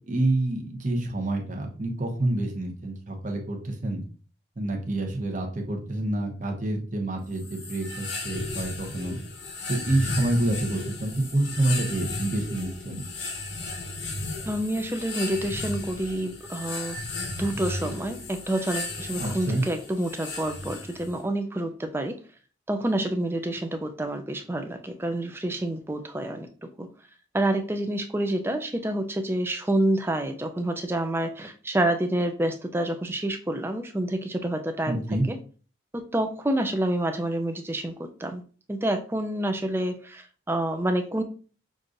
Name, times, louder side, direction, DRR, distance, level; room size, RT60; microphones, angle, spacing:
voice 1, 0.1-4.0 4.6-9.2 9.7-13.1 19.2-19.6 34.8-35.3, right 1 dB, 40° right, 2 dB, 0.9 m, -27 dB
sound 1, 7.3-21.2, left 2 dB, 60° left, 0.8 m, -35 dB
voice 2, 14.5-17.0 17.4-22.2 22.7-26.5 26.8-26.9 27.3-35.0 35.3-35.4 36.1-38.4 38.7-41.2, right 1 dB, 10° right, 6 dB, 0.4 m, -28 dB
6.1 x 2.5 x 2.5 m, 0.40 s
head